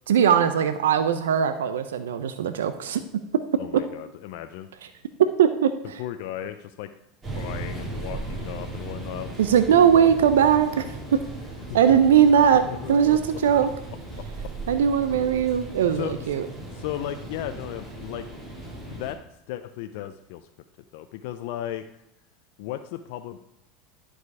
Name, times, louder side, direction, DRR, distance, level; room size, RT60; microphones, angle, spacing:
voice 1, 0.1-3.0 5.4-5.7 9.4-11.2 11.7-12.6 12.9-13.7 14.7-16.4, right 8 dB, 90° right, 10 dB, 0.5 m, -20 dB
voice 2, 3.6-4.7 6.0-6.9 7.3-9.3 12.7-13.2 13.6-13.7 15.9-16.4 16.7-18.3 18.9-19.2 19.5-20.5 20.9-21.8 22.6-23.4, left 12 dB, 70° left, 8 dB, 0.5 m, -35 dB
sound 1, 7.2-19.1, right 2 dB, 25° right, 3.7 m, -37 dB
10.5 x 5.0 x 4.8 m, 0.85 s
hypercardioid pair, 100°, 0 cm